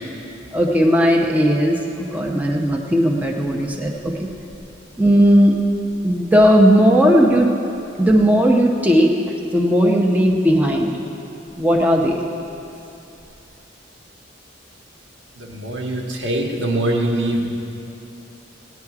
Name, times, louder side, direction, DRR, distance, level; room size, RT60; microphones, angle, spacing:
voice 1, 0.5-4.3 5.0-5.5 6.0-7.5 8.0-9.1 9.5-10.9 11.6-12.2, equal, 10° right, -1 dB, 0.7 m, -16 dB
voice 2, 15.4-17.5, right 1 dB, 80° right, -1 dB, 1.6 m, -23 dB
16.5 x 9.8 x 4.8 m, 2.8 s
head